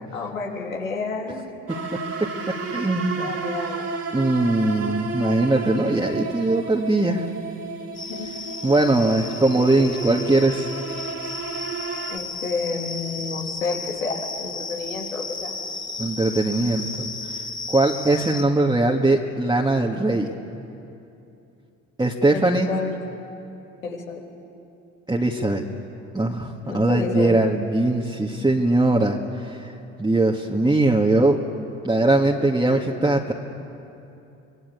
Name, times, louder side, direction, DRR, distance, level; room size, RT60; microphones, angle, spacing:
voice 1, 0.0-1.5 3.1-3.8 8.1-8.3 12.1-15.5 22.3-23.0 23.8-24.2 26.6-27.3, left 4 dB, 85° left, 0 dB, 3.3 m, -30 dB
sound 1, 1.7-12.2, right 4 dB, 40° right, 2.6 m, -32 dB
voice 2, 2.7-3.3 4.1-7.3 8.6-10.7 16.0-16.9 17.2-17.4 17.7-20.3 22.0-22.7 25.1-25.6 26.1-29.2 29.4-29.7 30.0-31.4 31.8-33.3, right 2 dB, 10° right, -1 dB, 2.0 m, -20 dB
sound 2, 7.9-18.4, left 3 dB, 30° left, 3.3 m, -34 dB
26.0 x 20.5 x 8.4 m, 2.8 s
hypercardioid pair, 60°, 39 cm